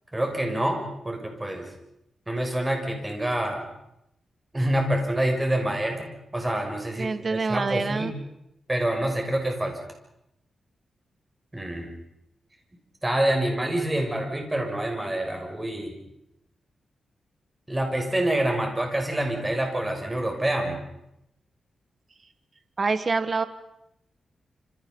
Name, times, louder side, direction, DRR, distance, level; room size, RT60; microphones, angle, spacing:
voice 1, 0.1-0.8 1.0-1.7 2.3-3.6 4.5-6.1 6.3-8.1 8.7-9.8 11.5-11.9 13.0-15.9 17.7-20.8, right 1 dB, 15° right, 2 dB, 6.7 m, -26 dB
voice 2, 7.0-8.1 22.8-23.4, right 4 dB, 40° right, 11 dB, 1.6 m, -26 dB
28.0 x 27.5 x 5.5 m, 0.81 s
wide cardioid pair, 120°, 0 cm